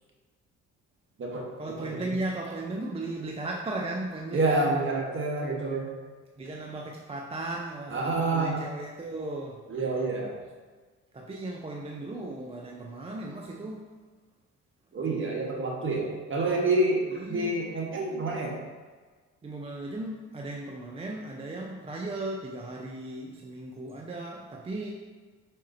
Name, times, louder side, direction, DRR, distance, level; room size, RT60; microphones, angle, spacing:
voice 1, 1.6-4.8 6.4-9.6 11.1-13.9 17.1-17.6 19.4-24.9, right 2 dB, 20° right, 0 dB, 0.4 m, -36 dB
voice 2, 4.3-5.9 7.9-8.6 9.7-10.3 14.9-18.6, right 2 dB, 40° right, -1 dB, 1.1 m, -28 dB
4.9 x 4.3 x 2.5 m, 1.5 s
cardioid pair, 90°, 30 cm